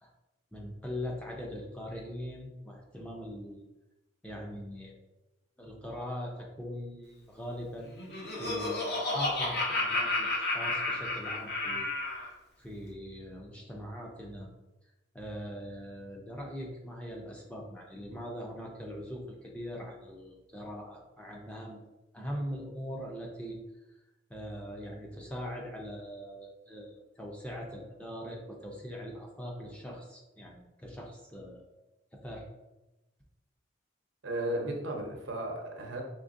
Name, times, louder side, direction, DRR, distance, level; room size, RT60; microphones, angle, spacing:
voice 1, 0.5-3.7 4.2-4.9 5.6-11.9 12.6-14.5 15.1-21.8 22.1-23.6 24.3-31.7 32.1-32.4, equal, 5° left, -1 dB, 0.5 m, -41 dB
Laughter, 7.8-12.3, left 2 dB, 55° left, 0.9 m, -31 dB
voice 2, 34.2-36.0, right 1 dB, 80° right, 2 dB, 0.8 m, -34 dB
3.7 x 3.3 x 2.6 m, 1.0 s
head